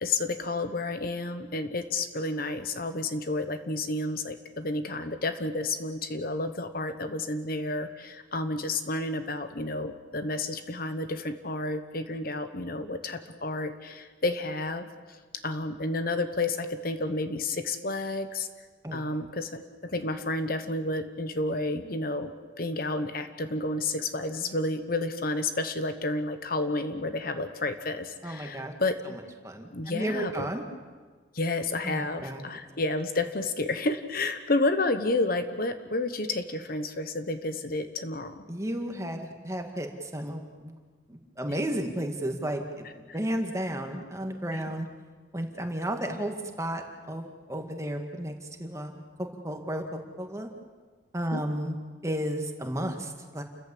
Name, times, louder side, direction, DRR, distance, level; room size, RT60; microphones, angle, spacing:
voice 1, 0.0-14.8 15.4-18.5 18.9-22.3 22.6-29.2 29.7-30.5 31.3-38.4 43.1-43.2 44.5-44.6 51.3-51.4, left 2 dB, 50° left, 9 dB, 1.2 m, -30 dB
voice 2, 28.2-28.7 29.1-30.6 31.8-32.4 38.5-40.7 41.1-44.9 45.3-48.3 48.6-50.5 51.1-51.8 52.0-53.4, right 1 dB, 15° right, 4 dB, 2.0 m, -33 dB
29.5 x 14.5 x 8.5 m, 1.5 s
head